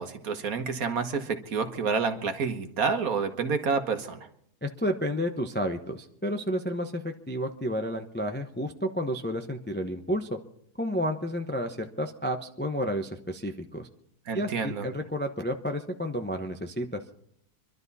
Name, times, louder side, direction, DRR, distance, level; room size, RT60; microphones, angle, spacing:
voice 1, 0.0-4.2 14.3-14.9, right 5 dB, 60° right, 7 dB, 1.6 m, -29 dB
voice 2, 4.6-10.4 10.8-13.9 14.3-17.0, equal, 10° left, 5 dB, 0.5 m, -31 dB
25.5 x 12.0 x 4.1 m, 0.69 s
omnidirectional pair, 1.7 m